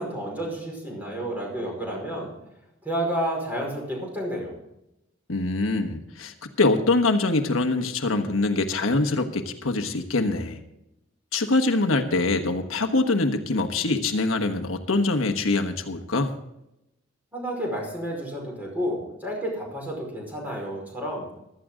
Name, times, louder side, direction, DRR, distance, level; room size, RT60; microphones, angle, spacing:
voice 1, 0.0-2.3 2.8-4.6 17.3-21.3, equal, 10° right, -1 dB, 5.2 m, -30 dB
voice 2, 5.3-10.6 11.3-16.3, left 2 dB, 85° left, 6 dB, 1.3 m, -24 dB
15.5 x 13.0 x 3.8 m, 0.85 s
head